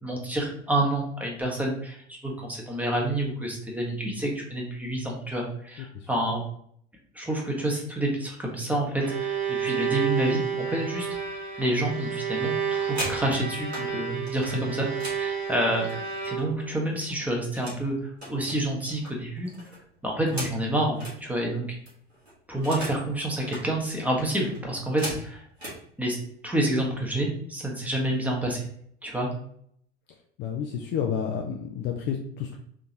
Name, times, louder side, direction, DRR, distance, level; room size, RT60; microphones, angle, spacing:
voice 1, 0.0-6.4 7.1-11.1 11.6-14.9 15.2-15.9 16.3-17.9 18.3-19.5 20.0-21.8 22.5-25.4 26.0-26.2 26.4-28.7 29.0-29.3, right 1 dB, 5° right, -1 dB, 1.2 m, -28 dB
Bowed string instrument, 8.8-16.8, right 7 dB, 40° right, 1.1 m, -30 dB
sound 1, 12.7-13.9 14.3-16.6 16.9-17.8 18.2-21.2 21.6-21.7 21.9-23.1 23.3-23.7 24.2-25.8 26.6-26.8 27.2-27.5 27.8-28.3, right 1 dB, 90° right, 1.7 m, -39 dB
voice 2, 30.4-32.6, left 7 dB, 35° left, 3 dB, 0.5 m, -30 dB
3.7 x 3.6 x 2.9 m, 0.66 s
figure-of-eight pair, 70°, 31 cm